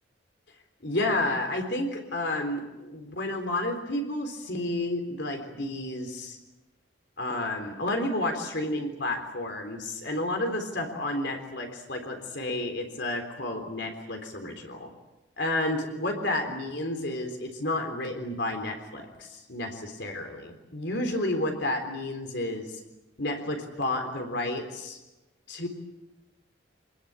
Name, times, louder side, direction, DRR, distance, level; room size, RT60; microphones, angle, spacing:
voice 1, 0.8-6.4 7.2-14.9 15.4-22.8 23.2-25.0 25.5-25.7, left 1 dB, 60° left, 4 dB, 3.8 m, -31 dB
25.5 x 20.5 x 8.9 m, 1.0 s
head